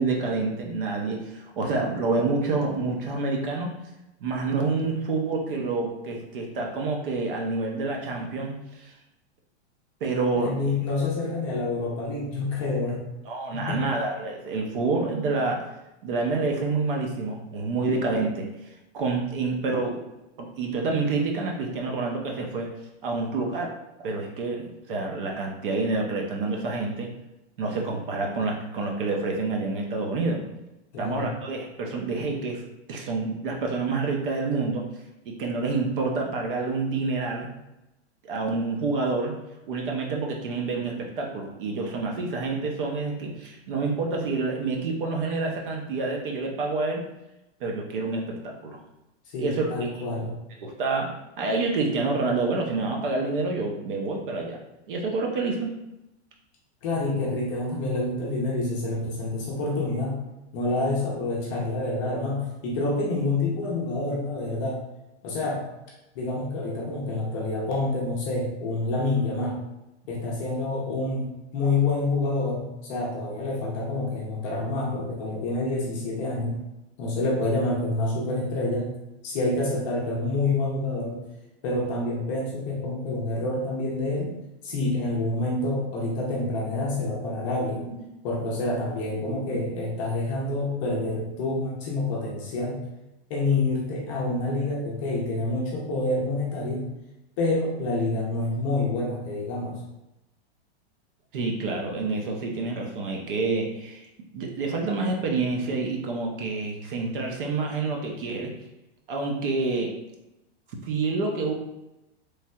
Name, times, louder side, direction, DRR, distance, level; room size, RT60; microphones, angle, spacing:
voice 1, 0.0-3.7 4.2-8.9 10.0-10.6 13.3-15.7 16.0-20.0 20.4-22.7 23.0-23.7 24.0-27.1 27.6-30.4 31.0-32.6 32.9-34.9 35.3-37.5 38.2-39.4 39.7-47.0 47.6-48.8 49.4-49.7 50.6-55.7 87.8-88.0 89.3-89.4 101.3-104.1 104.3-108.5 109.1-110.0 110.8-111.5, right 3 dB, 50° right, 1 dB, 0.6 m, -28 dB
voice 2, 10.4-13.0 13.5-13.8 30.9-31.3 49.3-50.3 56.8-60.2 60.5-64.8 65.2-65.6 66.1-69.5 70.1-76.6 77.0-78.9 79.2-81.2 81.6-84.3 84.6-87.8 88.2-92.8 93.3-96.9 97.4-99.8, left 2 dB, 30° left, -3 dB, 0.6 m, -27 dB
3.2 x 2.6 x 2.3 m, 0.94 s
supercardioid pair, 165°, 34 cm